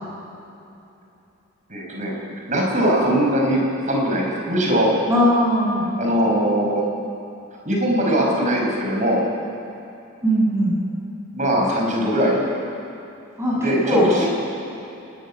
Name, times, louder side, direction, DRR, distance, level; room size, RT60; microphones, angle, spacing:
voice 1, 1.7-2.1 2.5-3.6 3.9-4.9 6.0-6.8 7.6-9.2 11.3-12.4 13.6-14.2, equal, 35° right, -1 dB, 5.1 m, -20 dB
voice 2, 5.1-6.0 10.2-10.8 13.4-14.1, equal, 15° right, -6 dB, 7.0 m, -19 dB
28.5 x 13.0 x 9.8 m, 2.8 s
head